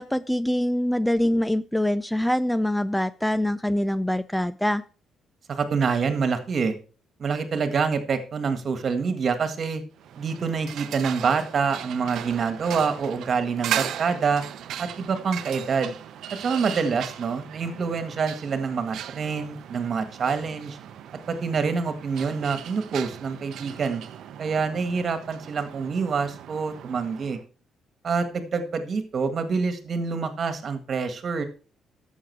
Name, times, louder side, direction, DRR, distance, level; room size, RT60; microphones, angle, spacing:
voice 1, 0.0-4.8, left 1 dB, 5° left, 16 dB, 0.4 m, -24 dB
voice 2, 5.5-6.8 7.2-9.8 10.2-14.4 14.8-15.9 16.3-20.8 21.3-24.0 24.4-27.4 28.0-31.5, right 5 dB, 50° right, 9 dB, 1.8 m, -26 dB
sound 1, 10.0-27.4, right 10 dB, 75° right, 0.7 m, -38 dB
11.0 x 7.4 x 4.6 m, 0.37 s
cardioid pair, 90°, 0 cm